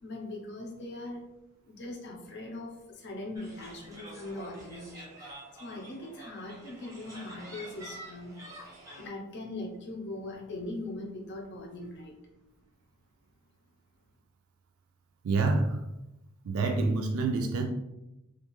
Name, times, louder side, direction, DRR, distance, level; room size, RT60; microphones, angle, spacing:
voice 1, 0.0-1.2 1.6-8.4 9.0-12.1, left 2 dB, 55° left, 1 dB, 0.6 m, -41 dB
sound 1, 3.4-9.1, right 1 dB, 15° right, 0.6 m, -47 dB
voice 2, 15.2-15.8 16.5-17.7, right 3 dB, 75° right, 3 dB, 0.3 m, -27 dB
2.5 x 2.3 x 2.9 m, 0.93 s
head